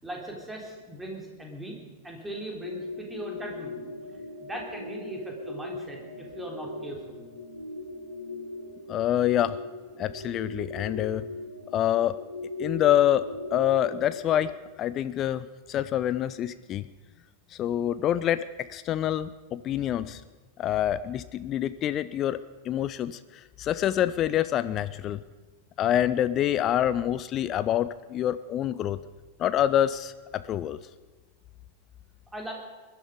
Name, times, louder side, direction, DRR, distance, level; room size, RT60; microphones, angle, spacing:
voice 1, 0.0-1.8 2.0-7.2 32.3-32.5, right 1 dB, 10° right, 0 dB, 3.8 m, -39 dB
sound 1, 2.6-14.5, left 2 dB, 75° left, 3.2 m, -39 dB
voice 2, 8.9-9.6 10.0-11.3 11.7-12.2 12.6-13.3 13.5-14.5 14.8-16.9 17.5-20.2 20.6-25.2 25.8-29.0 29.4-30.8, left 11 dB, 30° left, 15 dB, 0.5 m, -26 dB
21.5 x 11.5 x 5.3 m, 1.3 s
figure-of-eight pair, 90°, 0 cm